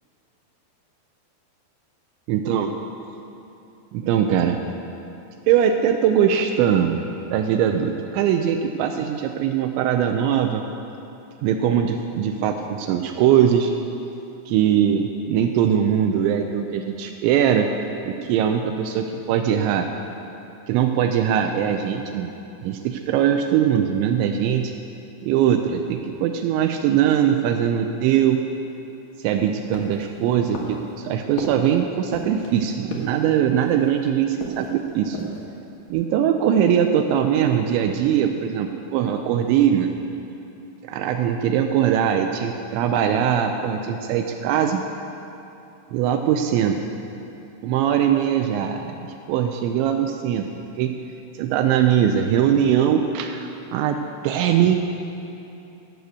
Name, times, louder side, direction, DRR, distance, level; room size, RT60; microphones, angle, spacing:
voice 1, 2.3-2.7 3.9-4.6 5.5-7.0 7.3-10.6 11.4-13.7 14.5-17.7 18.1-19.9 20.7-22.3 22.6-24.7 25.2-28.4 29.2-35.2 35.9-39.9 40.9-44.8 45.9-46.9 47.6-50.5 50.8-50.9 51.4-54.0 54.2-54.8, right 9 dB, 85° right, 5 dB, 2.7 m, -21 dB
sound 1, 29.7-30.1 30.5-30.9 31.4-31.7 32.1-32.5 32.9-33.2 33.6-34.0 34.4-34.8 35.0-35.5 35.9-36.0, left 1 dB, 60° left, 2.6 m, -34 dB
15.5 x 6.6 x 8.2 m, 2.9 s
omnidirectional pair, 5.6 m